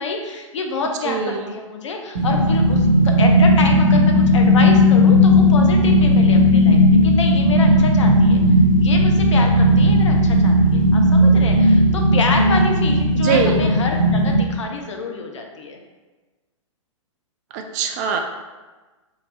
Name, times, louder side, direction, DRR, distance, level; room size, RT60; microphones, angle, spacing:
voice 1, 0.0-8.4 8.8-15.8, left 3 dB, 65° left, 3 dB, 0.7 m, -27 dB
voice 2, 1.0-1.5 13.1-13.6 17.5-18.2, right 6 dB, 35° right, 4 dB, 0.4 m, -22 dB
sound 1, 2.2-14.4, left 1 dB, 80° right, 0.9 m, -15 dB
3.2 x 2.9 x 3.9 m, 1.2 s
figure-of-eight pair, 115°, 17 cm